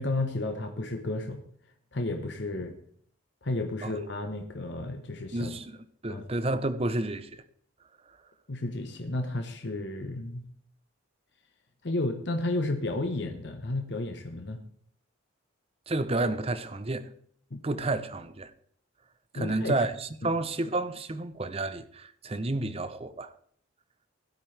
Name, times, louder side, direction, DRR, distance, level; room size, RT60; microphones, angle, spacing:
voice 1, 0.0-1.4 1.9-2.8 3.4-5.5 6.1-6.2 8.5-10.5 11.8-14.6 17.5-17.6 19.3-19.8 20.2-20.3, left 2 dB, 55° left, 1.0 m, -32 dB
voice 2, 5.3-5.8 6.0-7.4 15.9-17.1 17.6-18.5 19.3-23.3, right 2 dB, 30° right, 0.7 m, -30 dB
16.5 x 12.5 x 3.3 m
head